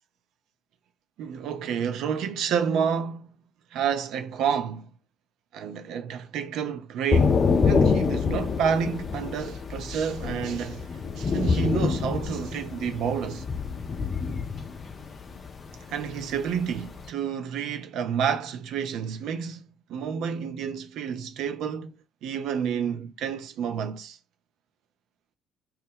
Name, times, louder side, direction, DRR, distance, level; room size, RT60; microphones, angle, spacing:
voice 1, 1.2-3.3 3.7-4.9 5.5-10.9 11.2-13.5 15.9-22.0 22.2-24.2, right 7 dB, 60° right, 0.5 m, -29 dB
Thunder / Rain, 7.1-17.1, left 5 dB, 40° left, 0.6 m, -26 dB
4.5 x 2.2 x 3.3 m
figure-of-eight pair, 50°, 0 cm